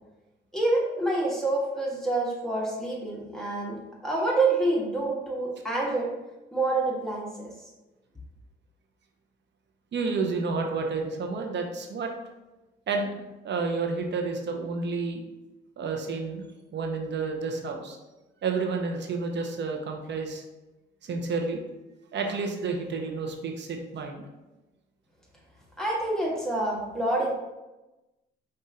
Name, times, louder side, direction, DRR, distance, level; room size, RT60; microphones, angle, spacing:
voice 1, 0.5-3.8 4.0-6.1 6.5-7.5 25.8-27.3, right 2 dB, ahead, -5 dB, 1.5 m, -27 dB
voice 2, 9.9-12.1 12.9-13.1 13.4-15.2 15.8-16.4 16.7-18.0 18.4-20.4 21.0-21.6 22.1-24.3, right 4 dB, 60° right, 3 dB, 0.9 m, -30 dB
5.4 x 2.7 x 3.7 m, 1.0 s
supercardioid pair, 65°, 21 cm